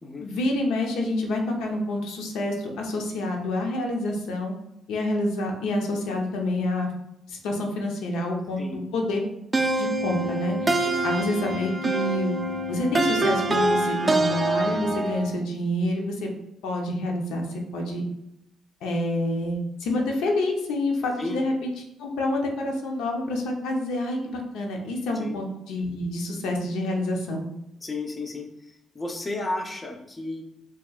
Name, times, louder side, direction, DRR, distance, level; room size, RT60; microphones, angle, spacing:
voice 1, 0.2-4.5 4.9-6.9 7.3-9.2 9.8-12.3 12.7-16.3 16.6-18.0 18.8-21.7 22.0-27.5, left 1 dB, 90° left, 1 dB, 0.7 m, -28 dB
sound 1, 9.5-15.3, right 2 dB, 25° right, 0.4 m, -25 dB
voice 2, 27.8-30.4, left 2 dB, 25° left, 2 dB, 0.7 m, -33 dB
4.5 x 3.0 x 2.3 m, 0.83 s
cardioid pair, 90°, 0 cm